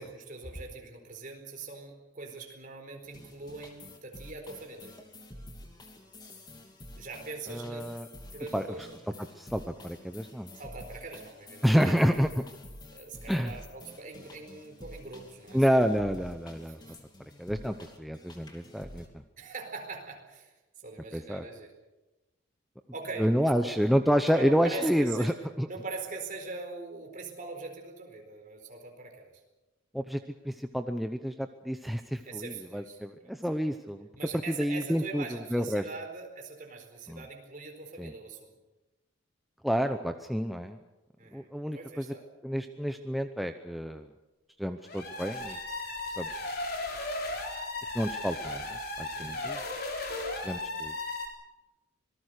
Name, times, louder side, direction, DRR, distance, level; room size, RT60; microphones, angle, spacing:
voice 1, 0.0-4.9 7.0-7.8 8.3-9.0 10.5-11.9 12.9-15.6 16.7-16.9 19.4-21.7 22.9-23.8 24.3-25.4 25.6-29.3 32.2-33.4 34.2-38.5 41.2-42.2 49.1-49.5, right 3 dB, 40° right, 3 dB, 4.5 m, -42 dB
sound 1, 3.0-19.1, left 1 dB, 20° left, 2.8 m, -49 dB
voice 2, 7.5-8.1 8.5-8.7 9.4-10.5 11.6-12.3 13.3-13.6 15.5-16.8 17.4-19.0 21.1-21.4 23.2-25.7 29.9-30.2 30.4-34.1 34.5-35.8 37.1-37.2 38.0-38.1 39.6-40.8 41.3-42.1 42.4-44.1 44.6-45.6 46.2-46.3 47.9-49.6 50.4-50.9, equal, ahead, 6 dB, 0.7 m, -29 dB
sound 2, 44.8-51.3, left 2 dB, 50° left, 4.1 m, -36 dB
26.0 x 19.5 x 6.6 m, 1.1 s
head